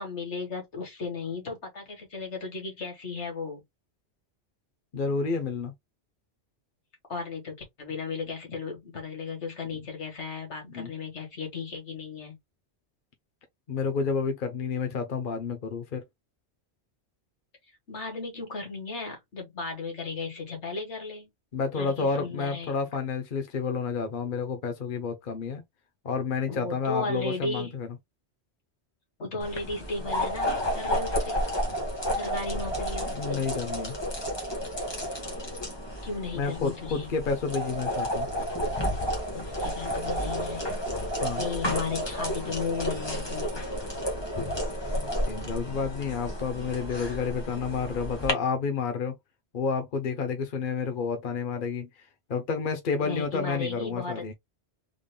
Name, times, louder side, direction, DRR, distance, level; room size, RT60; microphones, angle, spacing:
voice 1, 0.0-3.6 7.1-12.4 17.9-21.3 21.7-22.7 26.5-27.8 29.2-31.4 32.1-33.5 36.0-37.1 39.3-40.7 41.4-43.7 53.0-54.3, left 4 dB, 90° left, 1.9 m, -35 dB
voice 2, 4.9-5.7 10.6-10.9 13.7-16.0 21.5-25.6 26.0-27.9 33.1-33.9 36.3-38.3 41.2-41.4 44.9-49.1 49.5-51.9 52.3-54.3, left 5 dB, 50° left, 0.9 m, -30 dB
sound 1, 29.4-48.3, equal, 25° left, 1.3 m, -31 dB
3.8 x 3.4 x 2.2 m
omnidirectional pair, 1.1 m